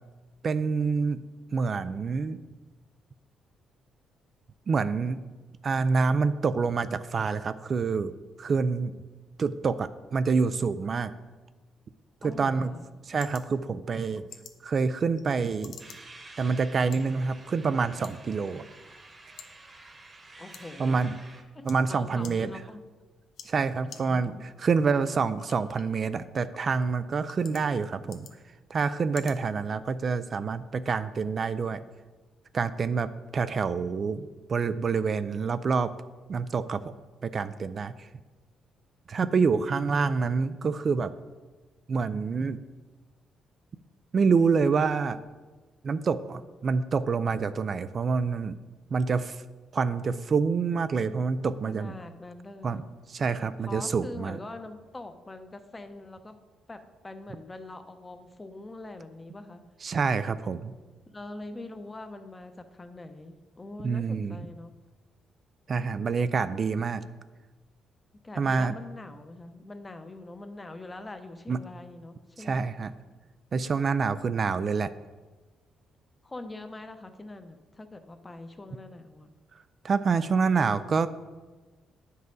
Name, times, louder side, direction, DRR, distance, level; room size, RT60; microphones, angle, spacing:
voice 1, 0.4-1.2 1.5-2.4 4.7-5.2 5.6-8.1 8.4-8.9 9.4-11.1 12.2-12.7 13.0-14.3 14.6-15.8 16.4-18.6 20.8-21.1 21.7-22.5 23.4-28.3 28.7-31.8 32.5-35.9 36.3-36.9 37.2-38.1 39.1-41.1 41.9-42.6 44.1-45.2 45.8-48.6 48.9-49.4 49.7-51.9 52.6-52.8 53.1-54.4 59.8-60.7 63.8-64.4 65.7-67.0 68.4-68.7 71.5-71.6 72.4-72.9 73.5-74.9 79.8-81.1, right 5 dB, 45° right, 13 dB, 0.3 m, -27 dB
voice 2, 12.2-12.9 20.4-21.0 21.5-22.8 24.1-24.5 51.0-51.3 51.6-52.9 53.7-56.4 56.7-59.6 61.1-64.7 68.2-72.6 76.2-79.3, left 2 dB, 20° left, 8 dB, 0.7 m, -43 dB
sound 1, 12.3-30.3, left 7 dB, 70° left, 0.7 m, -54 dB
sound 2, 15.8-21.4, right 2 dB, 30° right, 1.1 m, -50 dB
9.3 x 5.5 x 3.9 m, 1.3 s
cardioid pair, 90°, 0 cm